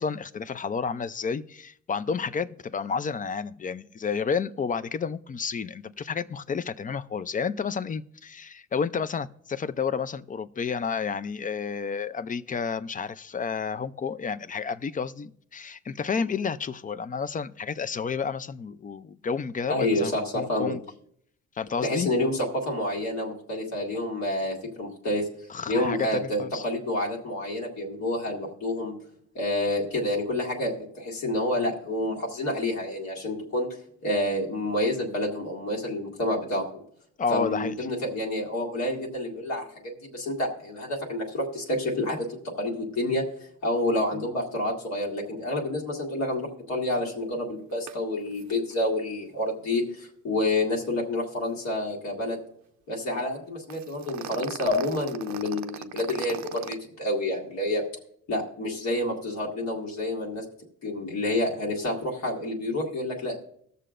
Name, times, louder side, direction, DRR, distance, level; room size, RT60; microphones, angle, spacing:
voice 1, 0.0-20.8 21.6-22.1 25.5-26.6 37.2-37.7, left 6 dB, 30° left, 15 dB, 0.4 m, -31 dB
voice 2, 19.7-20.7 21.8-25.3 25.7-28.9 29.4-33.7 34.0-36.6 37.3-39.6 40.0-42.3 42.6-43.2 43.6-52.4 52.9-57.8 58.3-60.4 60.8-63.4, left 1 dB, 65° left, -2 dB, 1.9 m, -28 dB
sound 1, 47.9-48.0 48.3-48.4 48.7-48.8 53.7-56.7, right 11 dB, 70° right, 0.5 m, -38 dB
19.0 x 6.7 x 2.5 m, 0.67 s
cardioid pair, 90°, 30 cm